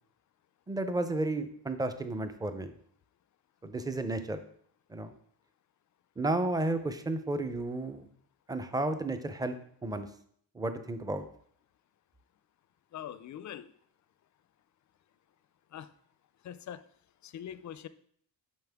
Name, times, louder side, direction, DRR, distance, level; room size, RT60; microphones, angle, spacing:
voice 1, 0.7-2.7 3.6-4.4 4.9-5.1 6.2-8.0 8.5-9.5 9.8-10.1 10.5-11.2, right 2 dB, 10° right, 9 dB, 0.5 m, -32 dB
voice 2, 12.9-13.7 15.7-15.9 16.4-16.8 17.2-17.9, left 10 dB, 45° left, 14 dB, 0.4 m, -42 dB
9.3 x 5.5 x 3.5 m, 0.63 s
cardioid pair, 150°, 40 cm